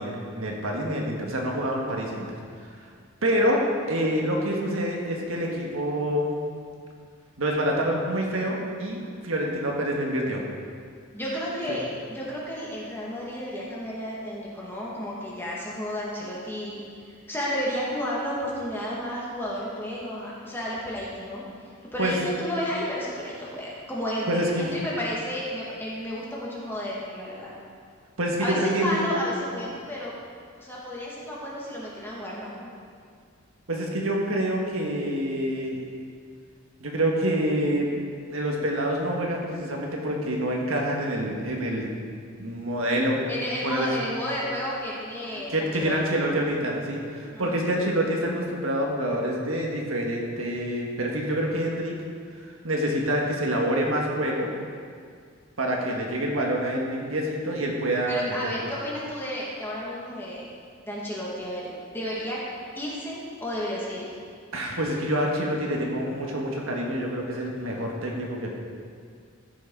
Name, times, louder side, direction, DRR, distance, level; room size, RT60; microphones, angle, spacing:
voice 1, 0.0-2.3 3.2-3.6 3.9-6.4 7.4-10.4 22.0-22.1 24.3-24.7 28.2-29.1 33.7-35.8 36.8-37.9 38.3-41.9 42.4-43.2 43.6-43.9 45.3-51.9 52.4-54.5 55.6-58.6 64.5-68.5, right 1 dB, 90° right, -1 dB, 1.7 m, -27 dB
voice 2, 11.1-16.8 17.1-21.4 21.9-27.5 28.4-30.1 30.6-32.7 43.3-46.0 47.3-47.7 58.1-60.5 60.8-62.4 62.7-64.1, equal, 10° left, -6 dB, 2.0 m, -32 dB
14.5 x 6.5 x 4.8 m, 2.2 s
head